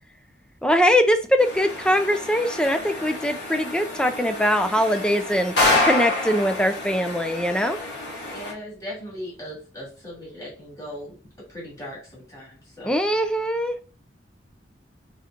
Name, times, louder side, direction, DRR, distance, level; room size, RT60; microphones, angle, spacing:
voice 1, 0.6-5.5 5.8-7.8 12.8-13.8, equal, 5° left, 7 dB, 0.5 m, -22 dB
sound 1, 1.4-8.5, left 2 dB, 85° left, 1.9 m, -28 dB
voice 2, 8.3-11.2 11.5-13.0, equal, 20° left, -6 dB, 2.6 m, -38 dB
4.7 x 4.2 x 2.5 m, 0.35 s
head